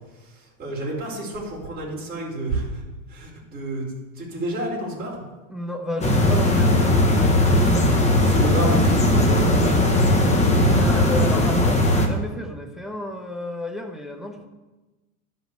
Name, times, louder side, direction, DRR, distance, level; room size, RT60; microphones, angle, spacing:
voice 1, 0.6-2.7 3.1-3.9 4.2-5.2 7.6-7.7 8.2-9.9, right 1 dB, 20° right, -4 dB, 3.4 m, -29 dB
voice 2, 5.5-7.6 10.7-14.5, left 1 dB, ahead, 3 dB, 0.5 m, -32 dB
sound 1, 6.0-12.1, left 1 dB, 15° left, 1.0 m, -18 dB
11.5 x 5.2 x 7.9 m, 1.1 s
supercardioid pair, 145°, 44 cm